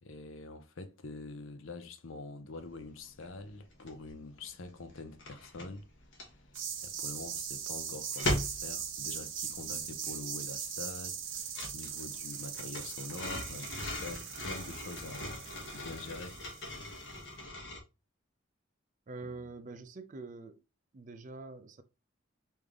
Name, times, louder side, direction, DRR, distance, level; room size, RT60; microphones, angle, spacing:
voice 1, 0.0-5.9 6.8-16.4 19.2-19.5, left 3 dB, 85° left, 0.6 m, -45 dB
sound 1, 2.7-2.9 3.1-4.1 4.4-17.8, left 1 dB, 65° left, 1.0 m, -40 dB
sound 2, 6.5-17.1, right 7 dB, 75° right, 0.7 m, -40 dB
voice 2, 19.1-20.6 20.9-21.8, right 3 dB, 40° right, 0.4 m, -45 dB
3.4 x 2.6 x 3.5 m
head